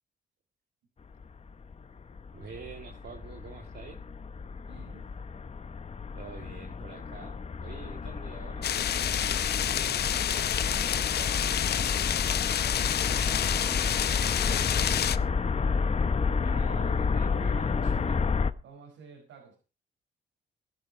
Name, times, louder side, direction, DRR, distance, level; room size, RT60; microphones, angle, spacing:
sound 1, 1.1-18.5, left 5 dB, 30° left, 0.9 m, -31 dB
voice 1, 2.3-4.0 6.1-8.7 16.4-18.2, right 6 dB, 55° right, 2 dB, 2.0 m, -46 dB
voice 2, 4.6-5.1 9.6-15.3 18.6-19.6, right 4 dB, 85° right, -1 dB, 5.6 m, -51 dB
sound 2, 8.6-15.2, left 10 dB, 55° left, 0.7 m, -29 dB
17.0 x 11.0 x 4.5 m, 0.33 s
cardioid pair, 90°, 20 cm